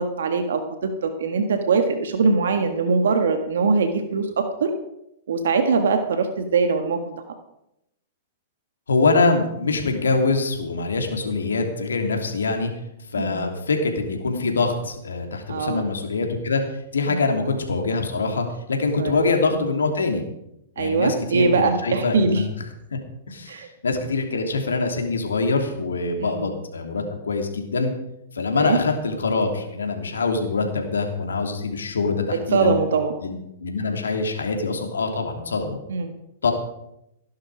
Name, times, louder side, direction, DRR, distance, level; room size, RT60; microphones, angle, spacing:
voice 1, 0.0-4.7 5.3-7.1 13.2-13.5 15.5-15.9 17.1-17.3 19.0-19.2 20.8-22.4 23.5-23.7 26.2-26.5 28.5-28.8 32.3-33.1 35.9-36.1, right 4 dB, 75° right, 7 dB, 1.6 m, -22 dB
voice 2, 8.9-12.7 13.1-16.6 16.9-20.2 20.8-22.5 23.3-27.9 28.3-32.7 33.2-35.8 36.4-36.5, left 3 dB, 85° left, 4 dB, 3.0 m, -24 dB
16.5 x 11.5 x 5.0 m, 0.83 s
hypercardioid pair, 115°, 0 cm